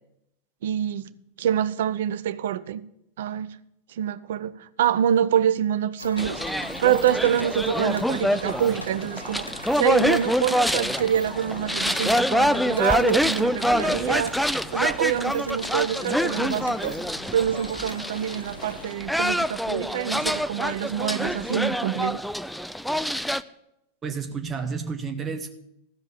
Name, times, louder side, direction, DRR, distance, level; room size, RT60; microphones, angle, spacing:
voice 1, 0.6-1.1 1.4-2.8 3.2-3.6 4.0-14.4 14.7-17.0 17.3-22.2, right 9 dB, 60° right, 0.5 m, -26 dB
sound 1, 6.0-18.9, left 1 dB, 85° left, 0.6 m, -41 dB
sound 2, 6.2-23.4, equal, ahead, 0.4 m, -26 dB
voice 2, 24.0-25.5, right 5 dB, 20° right, 1.1 m, -31 dB
14.5 x 5.4 x 7.2 m
figure-of-eight pair, 90°, 0 cm